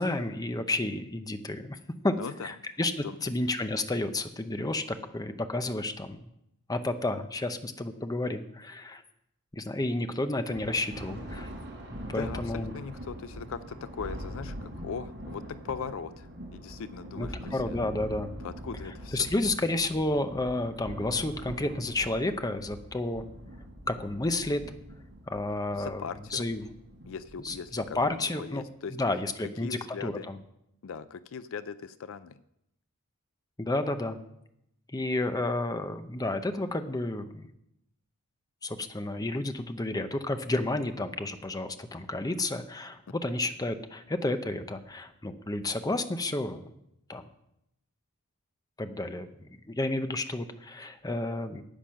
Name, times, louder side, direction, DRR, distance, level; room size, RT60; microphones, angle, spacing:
voice 1, 0.0-1.8 2.0-2.2 2.4-6.2 6.7-9.0 9.5-11.5 12.1-12.7 17.2-18.3 19.1-23.2 23.9-24.6 25.3-26.0 26.3-26.6 27.4-28.6 28.9-30.4 33.6-34.2 34.9-37.5 38.6-46.7 47.1-47.3 48.8-51.6, left 2 dB, 15° left, 9 dB, 0.7 m, -31 dB
voice 2, 2.1-2.5 3.0-3.2 12.0-17.8 18.4-19.3 25.7-26.5 27.1-29.0 29.6-30.3 30.8-32.4, left 6 dB, 65° left, 14 dB, 0.4 m, -40 dB
Thunder, 10.5-28.2, equal, 50° right, 4.2 m, -43 dB
10.0 x 8.9 x 6.3 m, 0.80 s
head